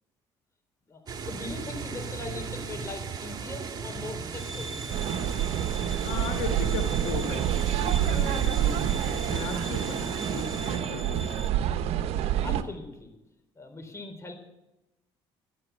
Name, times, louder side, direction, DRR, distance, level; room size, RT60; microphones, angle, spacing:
voice 1, 0.9-4.8 12.4-13.1 13.6-14.4, left 3 dB, 25° left, 4 dB, 3.8 m, -40 dB
sound 1, 1.1-10.8, right 5 dB, 40° right, 2.2 m, -37 dB
sound 2, 4.3-11.5, right 1 dB, ahead, 2.1 m, -42 dB
sound 3, 4.9-12.6, right 11 dB, 70° right, 1.0 m, -28 dB
voice 2, 6.0-11.5, left 5 dB, 80° left, 4 dB, 1.8 m, -37 dB
12.5 x 9.5 x 8.2 m, 0.94 s
supercardioid pair, 75°, 11 cm